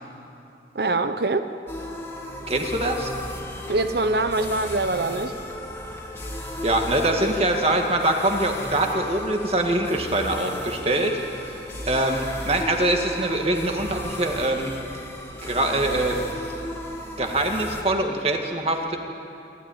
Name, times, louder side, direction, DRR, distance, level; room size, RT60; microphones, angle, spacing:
voice 1, 0.7-1.5 3.7-5.4, right 2 dB, 65° right, 9 dB, 0.8 m, -24 dB
sound 1, 1.7-17.8, left 1 dB, 15° left, 2.3 m, -35 dB
voice 2, 2.5-3.1 6.6-11.2 11.9-14.7 15.4-16.2 17.2-19.0, right 1 dB, 35° right, 3 dB, 1.9 m, -23 dB
27.0 x 13.0 x 10.0 m, 2.8 s
head